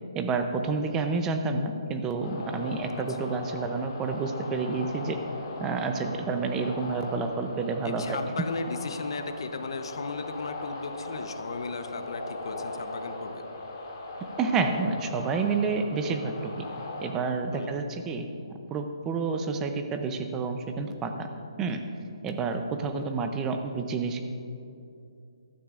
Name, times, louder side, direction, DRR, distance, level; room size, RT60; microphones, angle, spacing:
voice 1, 0.1-5.2 5.6-8.2 14.4-16.5 17.0-18.2 18.7-21.3 21.6-21.8 22.2-24.2, right 4 dB, 10° right, 6 dB, 0.6 m, -29 dB
sound 1, 2.2-17.1, left 2 dB, 30° left, 2.4 m, -39 dB
voice 2, 7.8-13.5 17.5-17.8, left 4 dB, 60° left, 8 dB, 0.9 m, -36 dB
15.5 x 13.0 x 2.5 m, 2.6 s
hypercardioid pair, 165°, 3 cm